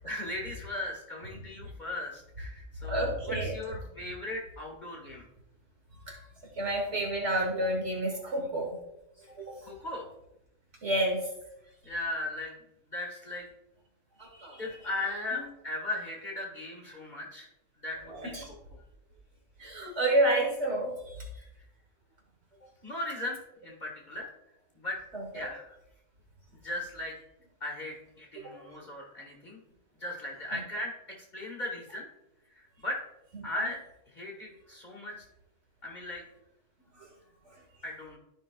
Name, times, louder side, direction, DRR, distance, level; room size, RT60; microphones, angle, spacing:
voice 1, 0.0-5.3 9.6-10.1 11.8-12.5 12.9-13.5 14.6-17.5 17.8-18.3 18.7-18.8 21.3-21.6 22.8-24.3 24.7-25.0 25.3-25.7 26.6-27.2 27.6-29.6 30.0-32.1 32.5-33.0 33.4-33.8 34.1-35.2 35.8-36.2 37.8-38.2, left 2 dB, 40° left, -2 dB, 1.3 m, -37 dB
voice 2, 2.8-3.5 6.1-6.2 6.6-8.7 9.4-9.6 10.8-11.2 14.2-14.6 18.3-18.5 19.6-21.2 25.1-25.4 28.4-28.6 37.0-37.1, right 1 dB, 65° right, 1 dB, 1.6 m, -29 dB
13.0 x 5.3 x 2.3 m, 0.86 s
omnidirectional pair, 1.3 m